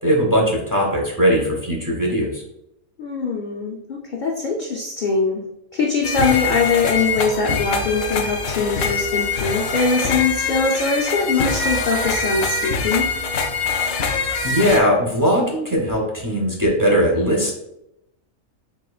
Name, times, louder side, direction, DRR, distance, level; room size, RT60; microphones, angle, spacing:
voice 1, 0.0-2.4 13.8-14.1 14.4-17.5, equal, 20° right, -2 dB, 0.7 m, -19 dB
voice 2, 3.0-5.4 5.7-13.1, left 4 dB, 65° left, 0 dB, 0.4 m, -22 dB
sound 1, 6.0-14.8, left 4 dB, 80° left, 1.0 m, -24 dB
4.4 x 3.8 x 2.3 m, 0.82 s
omnidirectional pair, 1.4 m